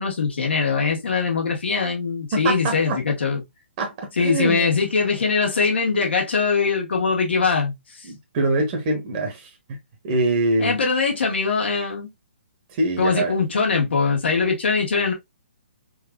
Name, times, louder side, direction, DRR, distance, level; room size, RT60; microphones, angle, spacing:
voice 1, 0.0-3.4 4.2-8.1 10.6-12.1 13.0-15.1, left 4 dB, 70° left, 1.6 m, -22 dB
voice 2, 2.3-3.0 3.8-4.7 8.1-9.5 10.0-10.8 12.7-13.3, right 2 dB, 35° right, 1.0 m, -24 dB
4.0 x 2.5 x 2.3 m
figure-of-eight pair, 140°, 6 cm